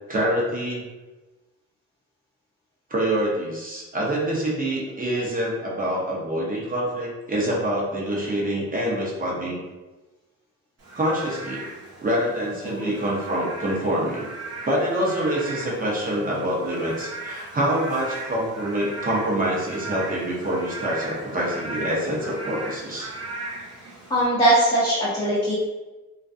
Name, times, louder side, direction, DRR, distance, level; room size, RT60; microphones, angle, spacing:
voice 1, 0.1-0.8 2.9-9.6 10.9-11.6 12.0-14.3 14.6-23.1, right 1 dB, 30° right, -4 dB, 0.8 m, -26 dB
Frog / Rain, 10.8-24.3, right 2 dB, 55° right, 0.9 m, -37 dB
voice 2, 24.1-25.5, right 1 dB, 15° left, -9 dB, 0.7 m, -21 dB
2.4 x 2.2 x 2.5 m, 1.2 s
cardioid pair, 90°, 30 cm